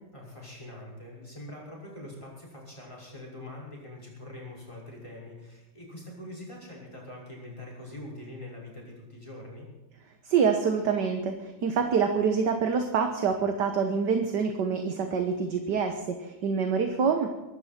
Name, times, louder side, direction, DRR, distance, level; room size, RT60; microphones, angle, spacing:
voice 1, 0.1-9.7, left 1 dB, 15° left, -3 dB, 6.0 m, -43 dB
voice 2, 10.3-17.3, right 6 dB, 55° right, 5 dB, 1.7 m, -26 dB
23.5 x 12.5 x 4.4 m, 1.1 s
omnidirectional pair, 2.4 m